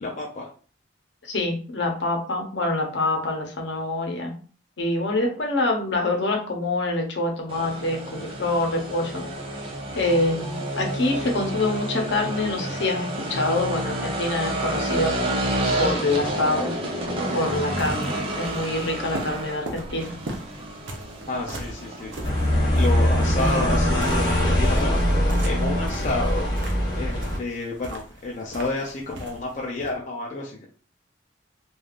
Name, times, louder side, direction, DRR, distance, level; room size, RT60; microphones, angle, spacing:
voice 1, 0.0-0.5 21.3-26.5 26.9-30.6, left 2 dB, 40° left, -2 dB, 0.4 m, -30 dB
voice 2, 1.2-4.3 4.8-9.2 9.9-15.1 15.8-16.7 17.3-20.1, left 2 dB, 70° left, 2 dB, 0.8 m, -25 dB
sound 1, 7.5-27.4, right 1 dB, 30° right, 0.6 m, -31 dB
sound 2, 17.0-30.0, right 1 dB, 75° right, 0.6 m, -40 dB
sound 3, 22.2-27.4, equal, 20° left, 1.2 m, -22 dB
3.3 x 2.4 x 2.4 m, 0.41 s
head